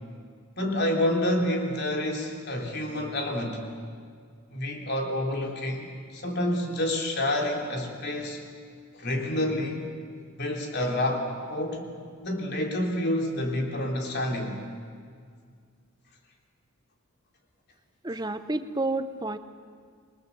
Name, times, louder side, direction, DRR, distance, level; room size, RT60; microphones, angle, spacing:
voice 1, 0.6-3.6 4.5-8.4 8.9-9.9 10.4-11.9 12.2-14.6, left 1 dB, 50° left, 1 dB, 3.4 m, -28 dB
voice 2, 18.0-19.4, right 2 dB, 20° right, 10 dB, 0.8 m, -30 dB
28.0 x 21.5 x 7.0 m, 2.1 s
head